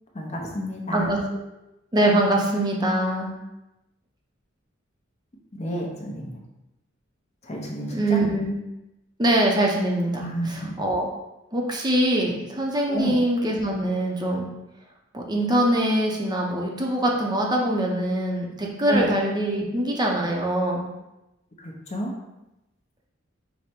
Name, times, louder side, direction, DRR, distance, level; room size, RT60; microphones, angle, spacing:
voice 1, 0.1-1.1 5.5-6.4 7.4-8.2 10.2-10.8 12.9-13.2 18.9-19.1 21.6-22.1, equal, 35° left, -1 dB, 0.7 m, -30 dB
voice 2, 0.9-1.4 1.9-3.3 7.9-8.5 9.2-11.1 11.5-14.5 15.1-20.8, right 1 dB, 20° right, -1 dB, 0.6 m, -23 dB
4.9 x 2.1 x 4.4 m, 0.94 s
head